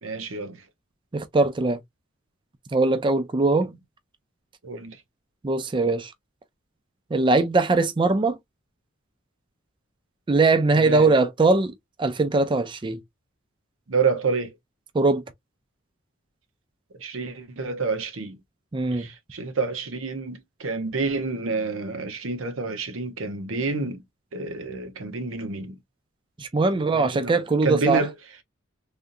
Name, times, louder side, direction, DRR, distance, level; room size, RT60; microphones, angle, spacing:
voice 1, 0.0-0.6 4.6-5.0 10.7-11.1 13.9-14.5 17.0-18.4 18.9-24.0 24.3-25.8 26.9-28.1, right 4 dB, 85° right, 0.8 m, -28 dB
voice 2, 1.1-1.8 2.7-3.7 5.4-6.1 7.1-8.4 10.3-11.7 12.0-13.0 14.9-15.2 18.7-19.1 26.4-28.0, right 3 dB, 25° right, 0.4 m, -21 dB
3.5 x 2.5 x 2.6 m
head